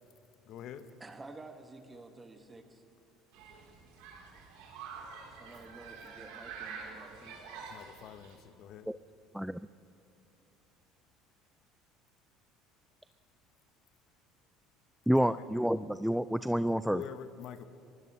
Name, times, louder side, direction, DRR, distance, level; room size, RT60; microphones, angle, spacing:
voice 1, 0.5-0.9 7.7-8.9 15.2-15.5 16.9-17.6, left 9 dB, 60° left, 12 dB, 0.8 m, -45 dB
voice 2, 1.0-2.8 5.2-7.4, right 2 dB, 20° right, 6 dB, 1.7 m, -51 dB
Human group actions, 3.3-8.3, right 5 dB, 80° right, 3.5 m, -47 dB
voice 3, 15.1-17.0, equal, ahead, 14 dB, 0.4 m, -29 dB
23.5 x 17.0 x 3.1 m, 2.9 s
supercardioid pair, 80°, 0 cm